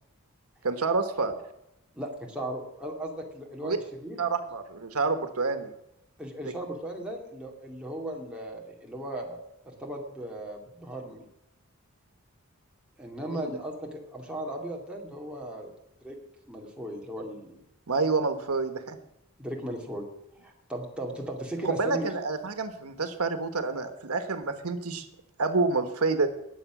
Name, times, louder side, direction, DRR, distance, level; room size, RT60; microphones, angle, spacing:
voice 1, 0.6-1.4 3.6-3.8 4.2-5.7 13.3-13.5 17.9-19.0 21.6-25.0 25.4-26.3, right 3 dB, 90° right, 9 dB, 1.4 m, -28 dB
voice 2, 1.9-4.2 6.2-9.4 9.6-11.3 13.0-15.7 16.0-16.2 16.5-17.6 19.4-20.1 20.4-22.1, right 1 dB, 5° right, -1 dB, 2.5 m, -37 dB
19.5 x 7.4 x 6.1 m, 0.85 s
head